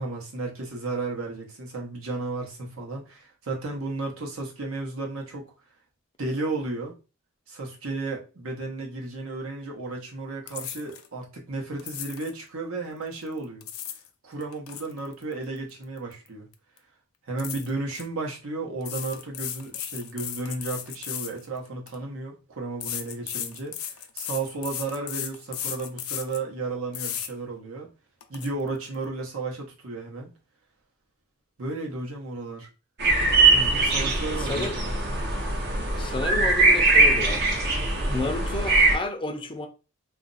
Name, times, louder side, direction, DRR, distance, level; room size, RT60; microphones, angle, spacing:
voice 1, 0.0-5.5 6.2-6.9 7.5-13.7 14.2-16.5 17.3-27.9 28.3-30.3 31.6-32.7 33.5-34.9, right 3 dB, 75° right, 0.9 m, -33 dB
sound 1, 10.5-11.1 11.8-12.3 13.4-14.1 14.4-16.3 16.5-16.8 17.4-18.0 18.8-22.0 22.8-26.4 26.9-27.3 27.8-27.9 28.2-28.5, left 10 dB, 85° left, 0.4 m, -35 dB
sound 2, 33.0-39.0, right 3 dB, 50° right, 0.6 m, -21 dB
voice 2, 34.3-34.8 35.9-37.4 38.1-39.7, left 2 dB, 25° left, 0.4 m, -31 dB
2.5 x 2.0 x 3.9 m
head